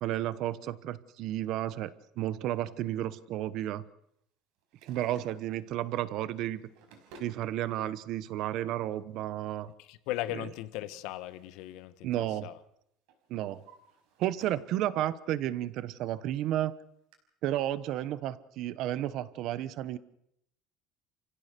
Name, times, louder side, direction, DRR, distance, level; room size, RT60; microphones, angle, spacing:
voice 1, 0.0-3.8 4.8-6.6 7.2-9.7 10.3-10.5 12.0-12.5 13.3-13.6 14.2-16.8 17.4-20.0, right 13 dB, 50° right, 1.1 m, -32 dB
Drawer open or close, 4.6-5.7 6.4-7.4 8.5-8.6 10.3-11.9 12.2-12.6 13.1-14.7 15.2-15.3 16.0-16.1 16.3-16.4 17.1-17.2, right 3 dB, 75° right, 5.2 m, -57 dB
voice 2, 9.9-12.6, left 15 dB, 65° left, 1.5 m, -38 dB
29.5 x 16.0 x 6.9 m
cardioid pair, 165°, 0 cm